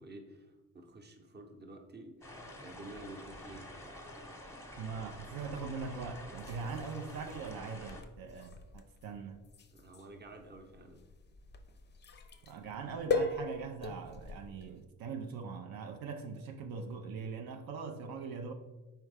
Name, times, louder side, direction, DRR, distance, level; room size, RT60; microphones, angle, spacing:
voice 1, 0.0-2.3 2.6-3.7 9.7-11.0, right 2 dB, 30° right, 4 dB, 0.8 m, -50 dB
sound 1, 2.2-8.0, left 1 dB, 10° left, 0.8 m, -48 dB
voice 2, 4.8-9.5 12.5-18.5, right 5 dB, 75° right, 5 dB, 0.5 m, -41 dB
sound 2, 5.1-14.8, left 3 dB, 30° left, 0.4 m, -41 dB
4.5 x 3.4 x 3.3 m, 1.1 s
cardioid pair, 60°, 36 cm